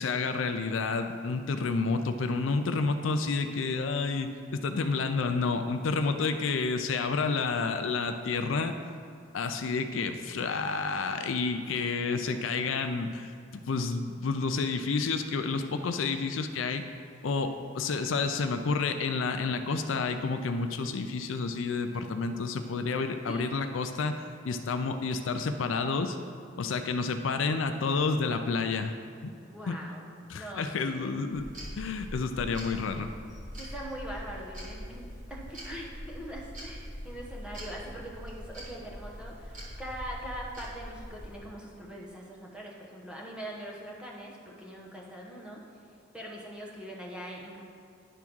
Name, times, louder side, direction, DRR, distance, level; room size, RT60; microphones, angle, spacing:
voice 1, 0.0-8.7 9.3-16.8 17.2-26.2 26.6-28.9 29.2-29.3 29.7-29.8 30.3-31.5 31.8-33.1, left 4 dB, 70° left, 7 dB, 0.4 m, -30 dB
voice 2, 11.7-12.2 23.3-23.4 29.4-30.1 30.3-31.1 33.5-45.6 46.1-47.7, right 1 dB, 5° right, -3 dB, 1.0 m, -42 dB
sound 1, 31.3-41.4, equal, 40° right, 1.6 m, -43 dB
10.0 x 3.6 x 6.1 m, 2.4 s
head